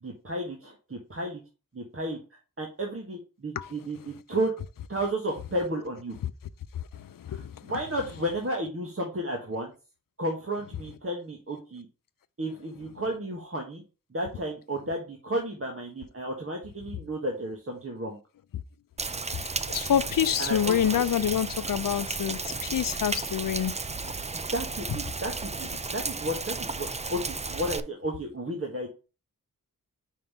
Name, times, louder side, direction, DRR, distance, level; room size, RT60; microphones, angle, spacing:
voice 1, 0.0-1.4 1.7-4.5 4.9-6.1 7.3-9.7 10.2-11.9 12.4-13.8 14.1-18.2 20.4-21.3 24.3-28.9, right 1 dB, 40° right, 1.4 m, -33 dB
voice 2, 6.7-7.7 19.7-23.7, left 9 dB, 70° left, 0.5 m, -27 dB
Rain, 19.0-27.8, right 3 dB, 20° right, 0.4 m, -34 dB
5.4 x 3.7 x 5.5 m
wide cardioid pair, 55°, 35 cm